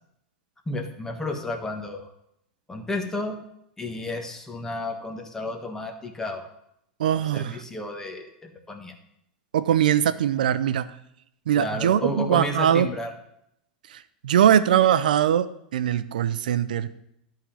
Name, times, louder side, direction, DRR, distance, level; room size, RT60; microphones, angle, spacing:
voice 1, 0.7-2.1 2.7-3.4 3.8-6.5 7.3-8.9 11.5-13.1, left 2 dB, 10° left, 3 dB, 1.3 m, -32 dB
voice 2, 7.0-7.6 9.5-10.9 11.5-12.9 14.2-15.5 15.7-16.9, right 10 dB, 85° right, 14 dB, 0.5 m, -21 dB
11.0 x 3.8 x 6.8 m, 0.77 s
hypercardioid pair, 115°, 4 cm